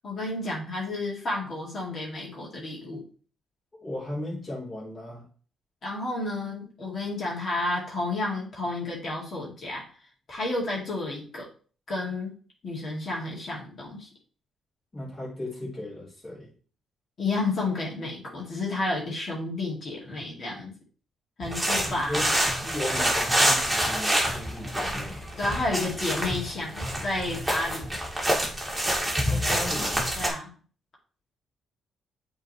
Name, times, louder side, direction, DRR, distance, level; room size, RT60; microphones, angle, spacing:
voice 1, 0.0-3.0 5.8-9.8 10.3-11.5 11.9-12.3 12.6-14.1 17.2-20.7 21.4-22.2 25.4-28.0 30.1-30.5, left 2 dB, 50° left, -3 dB, 2.4 m, -31 dB
voice 2, 3.8-5.2 14.9-16.5 21.9-22.3 22.6-25.2 29.3-30.0, left 1 dB, 30° left, -6 dB, 3.5 m, -36 dB
sound 1, 21.4-30.3, equal, 5° right, 2.1 m, -27 dB
8.0 x 3.9 x 3.2 m, 0.41 s
cardioid pair, 90°, 0 cm